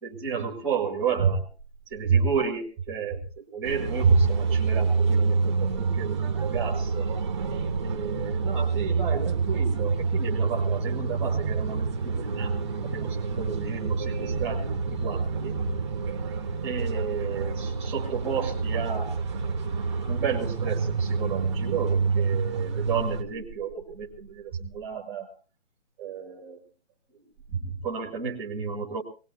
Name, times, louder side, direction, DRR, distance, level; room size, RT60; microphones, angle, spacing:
voice 1, 0.0-1.5 1.9-7.1 7.8-15.6 16.6-19.1 19.8-25.3 26.0-26.6 27.1-27.2 27.5-29.0, right 6 dB, 5° right, 0 dB, 1.8 m, -31 dB
sound 1, 3.6-23.2, right 4 dB, 25° right, 1.3 m, -27 dB
21.0 x 19.5 x 2.8 m, 0.34 s
hypercardioid pair, 170°, 36 cm